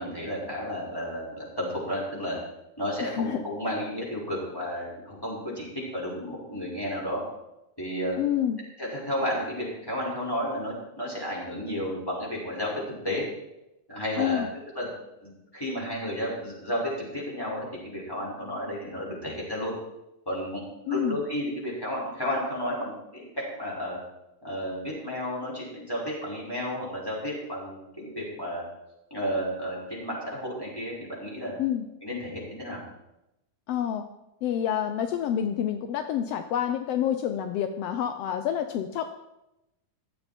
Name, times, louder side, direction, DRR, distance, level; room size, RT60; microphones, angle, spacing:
voice 1, 0.0-2.4 2.8-7.2 7.8-8.2 8.8-13.3 13.9-14.4 14.7-14.9 15.2-19.7 20.3-20.6 20.9-24.0 24.4-28.6 29.1-31.6 32.0-32.8, equal, 5° left, -5 dB, 5.5 m, -32 dB
voice 2, 3.0-3.4 8.2-8.6 14.2-14.5 20.9-21.2 31.6-31.8 33.7-34.0 34.4-39.1, left 10 dB, 75° left, 8 dB, 1.4 m, -28 dB
15.5 x 13.0 x 4.5 m, 0.89 s
omnidirectional pair, 3.6 m